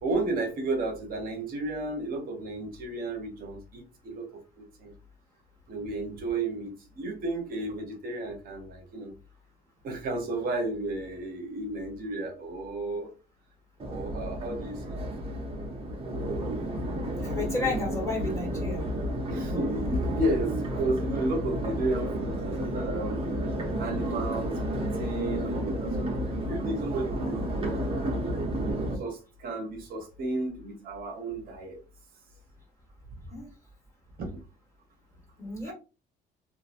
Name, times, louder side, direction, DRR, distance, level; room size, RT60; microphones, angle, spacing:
voice 1, 0.0-4.9 5.7-9.1 9.8-13.1 13.9-15.1 19.3-23.5 23.8-28.5 28.9-31.8 34.2-34.3 35.6-35.7, right 2 dB, 60° right, 0.9 m, -33 dB
Crowd, 13.8-28.9, right 1 dB, 35° right, 1.0 m, -31 dB
voice 2, 17.2-18.9 33.3-33.5 35.4-35.7, left 3 dB, 15° left, 1.6 m, -32 dB
2.9 x 2.5 x 2.5 m
cardioid pair, 110°, 17 cm